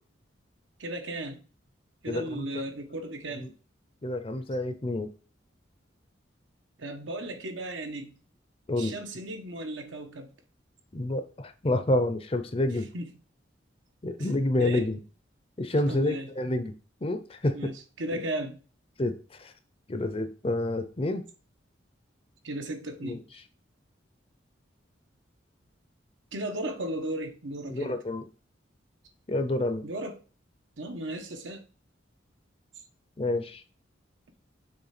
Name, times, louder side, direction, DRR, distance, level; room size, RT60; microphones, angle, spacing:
voice 1, 0.8-1.5 2.0-3.5 6.8-8.2 8.7-10.3 12.9-13.1 14.2-14.3 14.6-14.9 15.9-16.3 17.5-18.6 22.4-23.3 26.3-28.0 29.8-30.2 30.8-31.6, right 1 dB, 80° right, 1.1 m, -35 dB
voice 2, 2.1-2.7 3.4-3.5 4.0-5.1 8.7-9.0 10.9-12.9 14.0-15.0 15.6-16.7 17.0-17.6 19.0-19.5 19.9-21.2 23.0-23.2 27.7-28.3 29.3-29.8 33.2-33.6, left 1 dB, 30° left, 0.6 m, -28 dB
6.8 x 3.3 x 5.9 m
head